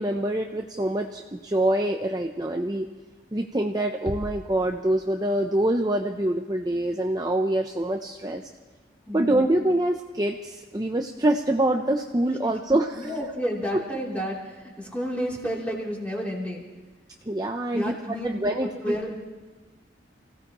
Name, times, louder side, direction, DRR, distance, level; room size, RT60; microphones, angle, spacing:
voice 1, 0.0-2.9 3.3-8.5 9.1-13.1 13.7-13.8 17.3-17.9 18.2-19.0, right 1 dB, 20° right, 3 dB, 0.6 m, -25 dB
sound 1, 4.0-5.7, left 1 dB, 30° left, 0.8 m, -39 dB
voice 2, 9.1-9.4 12.9-16.7 17.7-18.5 18.8-19.1, equal, 5° left, -4 dB, 3.1 m, -31 dB
29.0 x 16.5 x 3.0 m, 1.3 s
head